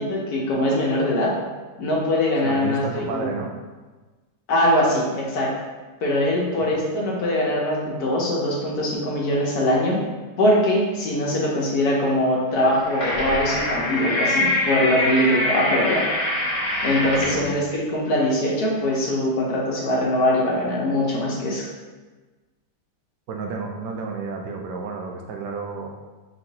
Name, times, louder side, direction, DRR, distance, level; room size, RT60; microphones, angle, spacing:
voice 1, 0.0-1.3 1.8-3.3 4.5-5.5 6.0-10.0 10.4-16.0 16.8-21.7, left 1 dB, 65° left, -3 dB, 1.2 m, -22 dB
voice 2, 2.4-3.5 17.0-17.5 23.3-25.9, right 4 dB, 75° right, 2 dB, 1.2 m, -31 dB
sound 1, 12.6-17.4, left 1 dB, 40° left, 1.4 m, -24 dB
5.2 x 3.1 x 2.7 m, 1.3 s
omnidirectional pair, 1.9 m